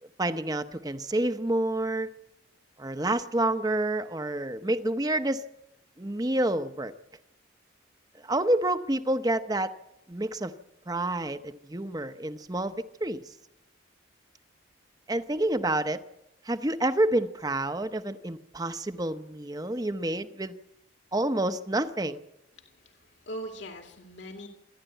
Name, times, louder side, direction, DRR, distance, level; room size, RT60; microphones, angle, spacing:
voice 1, 0.2-2.1 2.8-5.4 6.0-6.9 8.2-9.7 10.1-10.5 10.9-13.2 15.1-16.0 16.4-20.6 21.1-22.2, right 1 dB, 20° right, 11 dB, 0.8 m, -28 dB
voice 2, 22.6-24.5, right 1 dB, 70° left, 3 dB, 2.4 m, -41 dB
26.5 x 11.5 x 9.1 m, 0.89 s
head